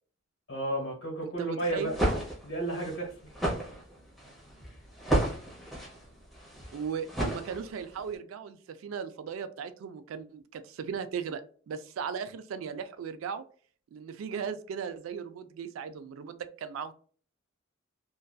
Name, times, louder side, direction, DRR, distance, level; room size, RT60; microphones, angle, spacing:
voice 1, 0.5-2.0 2.4-3.1, right 1 dB, 80° left, 1.1 m, -32 dB
voice 2, 1.2-1.9 6.7-11.4 11.7-13.4 13.9-16.9, right 7 dB, 80° right, 0.3 m, -37 dB
sound 1, 1.8-8.0, right 1 dB, ahead, 0.8 m, -32 dB
2.5 x 2.3 x 2.2 m
head